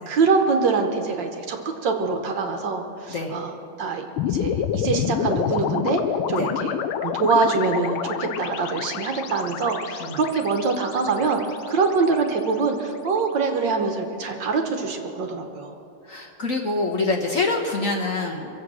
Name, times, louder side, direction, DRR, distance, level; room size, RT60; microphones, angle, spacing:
voice 1, 0.1-6.0 6.3-15.7, right 4 dB, 60° right, 4 dB, 1.6 m, -24 dB
sound 1, 4.2-12.5, left 9 dB, 75° left, 1.5 m, -28 dB
voice 2, 16.1-18.5, left 3 dB, 45° left, -1 dB, 1.3 m, -25 dB
24.0 x 8.0 x 6.2 m, 2.8 s
omnidirectional pair, 2.4 m